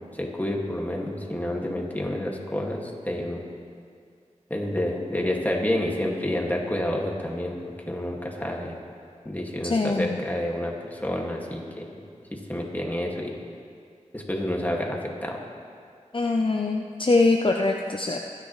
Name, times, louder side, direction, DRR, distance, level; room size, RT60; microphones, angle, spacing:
voice 1, 0.1-3.4 4.5-7.6 7.9-8.8 9.2-12.0 12.3-13.4 14.1-15.4, left 1 dB, 15° left, -1 dB, 2.1 m, -29 dB
voice 2, 9.7-10.2 16.1-18.2, left 3 dB, 40° left, 2 dB, 0.6 m, -23 dB
24.0 x 9.7 x 3.2 m, 2.2 s
wide cardioid pair, 50°, 13 cm